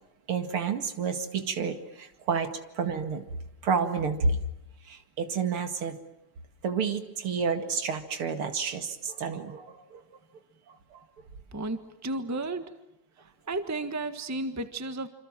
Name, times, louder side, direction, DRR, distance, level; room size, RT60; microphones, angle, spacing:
voice 1, 0.3-3.2 3.6-4.4 4.8-6.0 6.6-10.0 10.7-11.0, right 5 dB, 75° right, 8 dB, 2.9 m, -30 dB
voice 2, 11.5-12.7 13.5-15.1, right 2 dB, 10° right, 10 dB, 1.2 m, -33 dB
27.5 x 26.5 x 7.5 m, 0.85 s
omnidirectional pair, 2.4 m